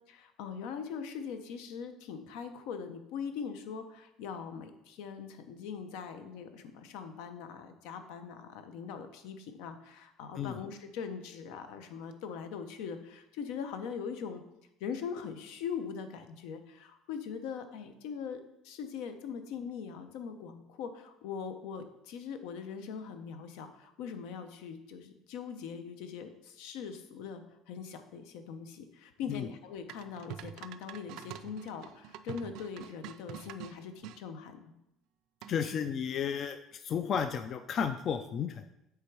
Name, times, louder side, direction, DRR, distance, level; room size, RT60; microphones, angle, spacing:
voice 1, 0.1-14.4 14.8-34.6, left 6 dB, 80° left, 8 dB, 0.7 m, -41 dB
sound 1, 29.9-34.2 35.4-35.8, right 10 dB, 65° right, 0.3 m, -46 dB
voice 2, 35.5-38.7, left 7 dB, 35° left, 9 dB, 0.3 m, -33 dB
8.0 x 3.5 x 4.7 m, 0.86 s
cardioid pair, 160°, 0 cm